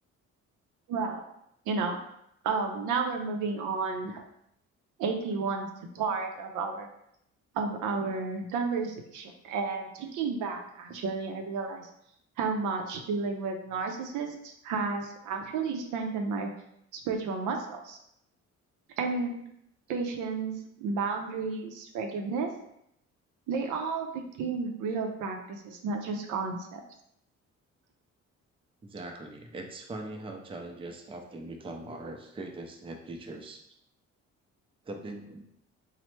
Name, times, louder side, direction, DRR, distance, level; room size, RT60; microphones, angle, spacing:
voice 1, 0.9-1.2 1.7-2.0 2.4-4.2 5.0-5.7 5.9-6.9 7.5-11.9 12.4-16.5 16.9-18.0 19.0-19.4 19.9-22.5 23.5-26.8, right 4 dB, 85° right, 4 dB, 0.5 m, -32 dB
voice 2, 28.8-33.6 34.8-35.4, right 2 dB, 20° right, 3 dB, 0.4 m, -41 dB
3.1 x 2.0 x 3.1 m, 0.75 s
cardioid pair, 90°, 30 cm